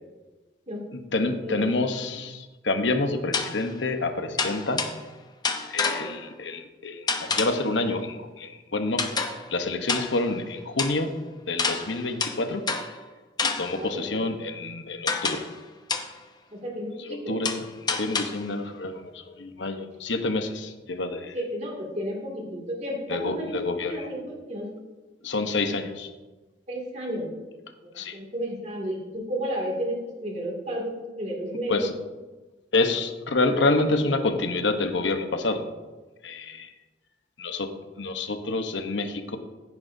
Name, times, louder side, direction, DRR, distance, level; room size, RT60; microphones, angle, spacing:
voice 1, 0.9-4.9 5.7-9.1 9.5-11.1 11.5-12.7 13.4-15.5 17.0-21.4 23.1-24.1 25.2-26.1 27.9-28.2 31.7-31.9 32.7-35.6 36.2-36.7 37.4-39.4, left 2 dB, 75° left, 7 dB, 1.0 m, -28 dB
voice 2, 1.4-1.9 6.0-6.1 13.8-14.1 16.5-17.4 21.3-23.6 23.9-24.7 26.7-27.3 27.8-31.9, equal, 35° right, -1 dB, 2.4 m, -32 dB
sound 1, 1.9-2.0 3.3-3.7 4.4-5.1 5.4-6.3 7.1-7.7 9.0-9.5 9.9-10.3 10.8-11.0 11.6-13.0 13.4-13.9 15.1-15.6 15.9-16.2 17.4-18.5, left 4 dB, 20° left, 0.7 m, -29 dB
15.0 x 9.6 x 2.7 m, 1.2 s
head